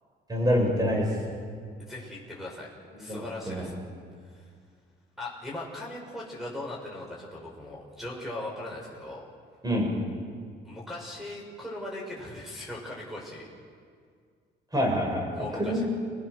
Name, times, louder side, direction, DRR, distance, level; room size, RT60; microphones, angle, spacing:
voice 1, 0.3-1.1 3.1-3.7 9.6-9.9 14.7-15.3 15.6-15.8, equal, 20° right, 0 dB, 7.5 m, -26 dB
voice 2, 1.8-2.7 3.0-3.8 4.3-4.4 5.2-9.3 10.6-13.5 15.3-15.8, left 1 dB, ahead, -2 dB, 6.1 m, -39 dB
28.5 x 19.0 x 6.6 m, 2.1 s
cardioid pair, 90°, 20 cm